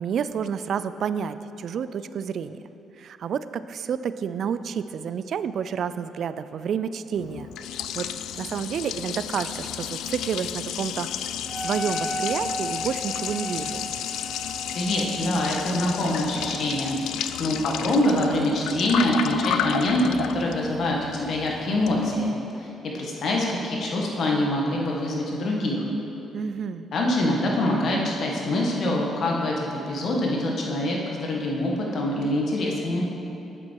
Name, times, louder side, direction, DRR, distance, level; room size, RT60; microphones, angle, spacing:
voice 1, 0.0-2.6 3.0-7.5 7.9-8.1 8.4-11.1 11.6-13.8 26.3-26.9, right 7 dB, 65° right, 13 dB, 0.3 m, -29 dB
Liquid, 7.2-22.3, left 9 dB, 85° left, 0.3 m, -32 dB
Wind instrument woodwind instrument, 11.4-17.2, equal, 10° right, 0.7 m, -35 dB
voice 2, 14.7-16.9 17.4-22.3 22.5-25.8 26.9-33.0, left 1 dB, 60° left, -1 dB, 1.6 m, -25 dB
8.6 x 7.5 x 4.7 m, 2.9 s
cardioid pair, 90°, 0 cm